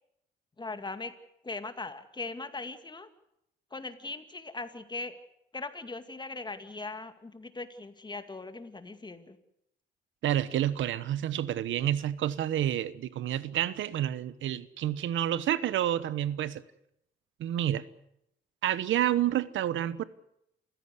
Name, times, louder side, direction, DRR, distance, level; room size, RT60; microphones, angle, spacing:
voice 1, 0.6-1.1 1.4-3.1 3.7-5.2 5.5-9.4, left 3 dB, 20° left, 9 dB, 2.2 m, -39 dB
voice 2, 10.2-16.6 17.4-17.8 18.6-20.0, right 11 dB, 75° right, 17 dB, 1.1 m, -29 dB
28.0 x 15.5 x 8.3 m, 0.79 s
cardioid pair, 90°, 20 cm